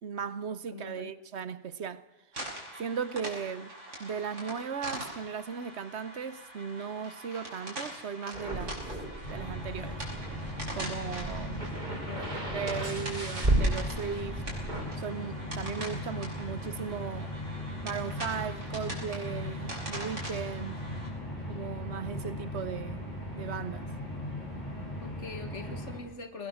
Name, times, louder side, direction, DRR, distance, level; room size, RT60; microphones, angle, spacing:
voice 1, 0.0-2.1 2.8-8.8 9.3-10.0 10.8-11.7 12.5-14.4 15.0-17.4 17.8-20.8 21.5-23.9, right 6 dB, 65° right, 1.2 m, -37 dB
voice 2, 0.7-1.1 11.9-12.5 25.0-26.5, left 4 dB, 70° left, 2.3 m, -43 dB
sound 1, 2.3-21.1, right 1 dB, 85° right, 5.8 m, -43 dB
sound 2, 8.3-14.8, right 1 dB, 35° right, 4.7 m, -34 dB
sound 3, 9.2-26.0, left 1 dB, 35° left, 7.4 m, -38 dB
20.5 x 20.0 x 6.4 m
omnidirectional pair, 1.2 m